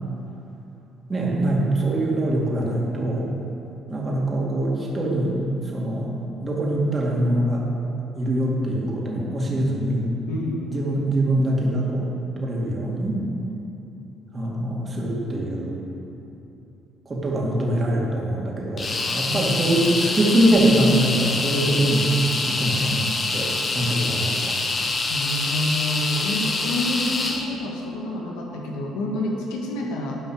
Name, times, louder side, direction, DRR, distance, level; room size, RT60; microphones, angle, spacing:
voice 1, 1.1-3.3 3.9-5.4 5.7-6.1 6.4-7.6 8.2-10.1 10.7-12.1 12.4-13.2 14.3-15.8 17.1-22.1 22.5-23.1 23.3-24.6, right 1 dB, 30° right, -3 dB, 2.4 m, -23 dB
voice 2, 10.3-10.7 19.2-20.2 25.1-30.2, left 1 dB, 90° left, -1 dB, 1.7 m, -29 dB
sound 1, 18.8-27.5, left 3 dB, 35° left, 1.2 m, -25 dB
11.5 x 5.3 x 6.5 m, 3.0 s
cardioid pair, 85°, 0 cm